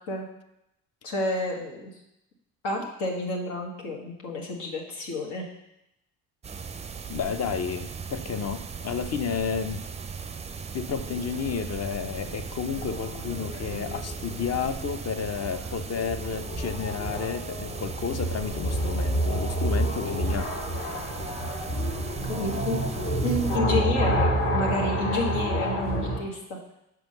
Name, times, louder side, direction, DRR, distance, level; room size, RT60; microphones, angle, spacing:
voice 1, 1.0-1.9 2.6-5.5 22.3-22.8 23.2-26.4, left 2 dB, 75° left, 0 dB, 1.5 m, -30 dB
sound 1, 6.4-23.6, right 6 dB, 15° right, 0.4 m, -38 dB
voice 2, 7.1-9.9 10.7-20.5, left 6 dB, 40° left, 10 dB, 0.7 m, -31 dB
sound 2, 11.0-26.2, right 1 dB, 60° left, 2.1 m, -29 dB
6.1 x 4.5 x 5.4 m, 0.86 s
hypercardioid pair, 55°, 40 cm